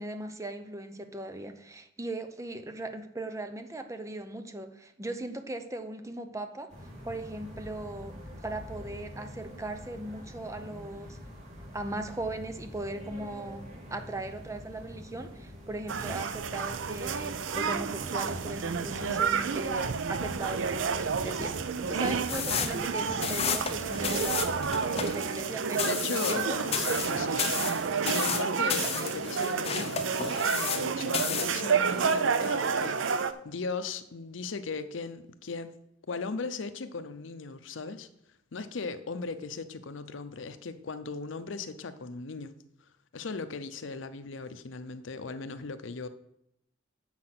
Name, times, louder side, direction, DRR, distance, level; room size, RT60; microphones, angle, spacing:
voice 1, 0.0-6.7 7.0-8.1 8.4-11.2 11.7-24.6 25.0-25.9 26.3-26.6, right 2 dB, 15° right, 0.7 m, -38 dB
sound 1, 6.7-24.7, equal, 35° right, 2.7 m, -45 dB
sound 2, 15.9-33.3, right 6 dB, 80° right, 0.5 m, -30 dB
sound 3, 22.3-30.9 31.1-31.6, left 7 dB, 30° left, 0.7 m, -32 dB
voice 2, 25.7-27.6 28.1-35.8 36.1-38.1 38.5-42.5 43.1-46.1, left 4 dB, 85° left, 0.6 m, -38 dB
7.5 x 5.9 x 6.0 m
head